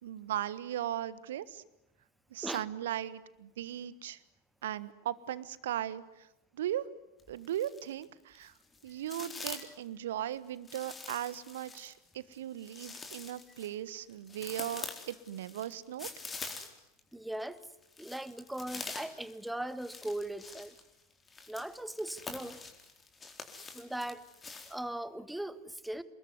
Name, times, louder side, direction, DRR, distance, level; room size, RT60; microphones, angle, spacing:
voice 1, 0.0-1.6 2.3-4.2 4.6-6.3 6.5-6.9 7.3-8.5 8.8-16.1, right 11 dB, 60° right, 17 dB, 1.5 m, -38 dB
sound 1, 7.2-8.0 8.4-9.8 10.7-17.0 17.3-24.8, left 4 dB, 15° left, 4.0 m, -45 dB
voice 2, 17.1-17.6 18.0-20.7 21.5-22.6 23.7-24.2 24.7-26.0, right 1 dB, 5° right, 15 dB, 1.5 m, -39 dB
29.0 x 21.0 x 9.7 m, 0.89 s
figure-of-eight pair, 90°, 0 cm